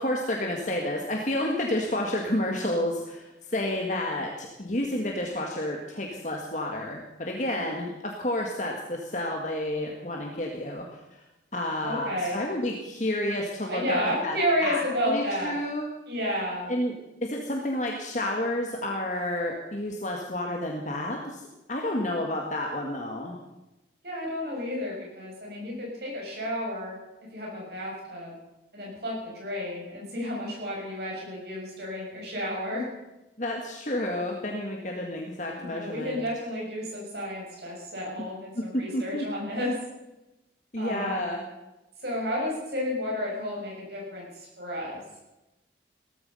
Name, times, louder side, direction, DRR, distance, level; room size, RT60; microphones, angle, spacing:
voice 1, 0.0-11.2 11.5-14.0 14.2-14.4 14.6-15.9 16.7-16.9 17.2-21.4 21.7-23.4 33.4-36.2 38.6-39.3 40.7-41.4, left 1 dB, 40° left, 0 dB, 1.8 m, -30 dB
voice 2, 11.8-12.4 13.6-15.6 16.1-16.8 24.0-27.0 27.3-28.3 28.7-32.9 35.6-39.7 40.8-41.3 42.0-45.0, equal, 60° right, -2 dB, 7.2 m, -31 dB
17.5 x 14.5 x 5.6 m, 0.99 s
head